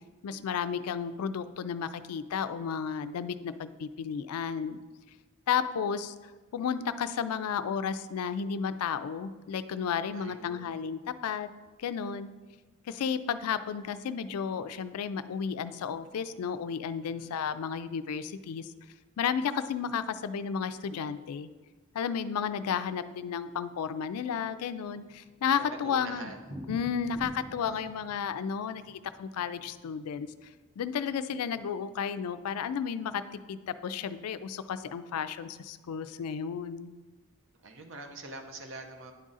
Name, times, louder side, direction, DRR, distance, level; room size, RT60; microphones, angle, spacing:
voice 1, 0.2-4.8 5.5-6.1 6.5-11.5 11.8-12.3 12.9-18.7 19.2-21.5 21.9-26.3 26.7-30.3 30.8-33.2 33.5-36.9, left 7 dB, 80° left, 13 dB, 0.3 m, -33 dB
voice 2, 10.1-10.7 17.0-17.3 25.6-26.5 27.7-27.8 37.6-39.1, right 2 dB, 60° right, 5 dB, 0.8 m, -44 dB
Thunder, 25.1-30.9 31.1-31.2 31.5-31.6 31.9-32.0 32.5-32.8, equal, 5° right, 1.1 m, -48 dB
9.9 x 3.7 x 4.0 m, 1.3 s
head